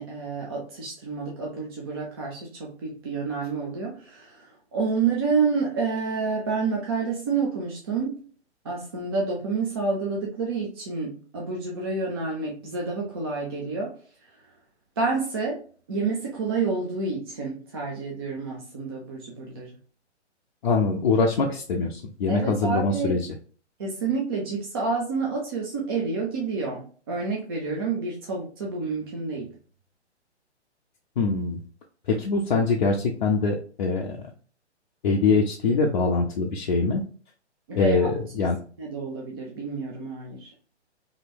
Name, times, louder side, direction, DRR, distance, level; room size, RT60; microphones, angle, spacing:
voice 1, 0.0-8.2 8.6-13.9 14.2-14.5 15.0-15.6 15.9-19.7 22.3-23.2 23.8-29.5 37.7-40.5, right 4 dB, 20° right, -2 dB, 0.4 m, -29 dB
voice 2, 20.6-23.2 31.2-31.6 32.1-34.2 35.0-37.0 37.7-38.6, left 4 dB, 45° left, 0 dB, 0.4 m, -23 dB
3.0 x 2.6 x 2.3 m, 0.42 s
figure-of-eight pair, 125°, 35 cm